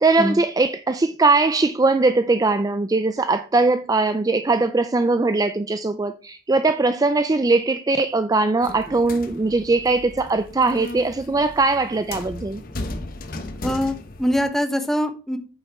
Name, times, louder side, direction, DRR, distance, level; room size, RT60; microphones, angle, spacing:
voice 1, 0.0-12.6, right 3 dB, 20° right, 0.3 m, -20 dB
sound 1, 8.6-14.4, left 2 dB, 55° left, 1.1 m, -35 dB
voice 2, 13.6-15.4, equal, ahead, 1.0 m, -23 dB
8.8 x 7.2 x 3.5 m
head